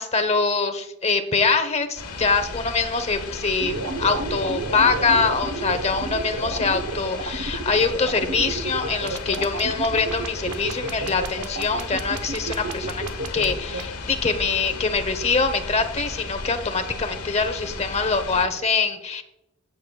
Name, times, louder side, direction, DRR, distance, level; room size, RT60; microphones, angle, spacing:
voice 1, 0.0-13.0 13.3-19.2, left 4 dB, 30° left, 9 dB, 0.8 m, -24 dB
sound 1, 2.0-18.4, left 3 dB, 85° left, 1.4 m, -35 dB
sound 2, 3.6-13.8, right 3 dB, 75° right, 0.9 m, -31 dB
15.5 x 7.1 x 2.3 m, 0.87 s
head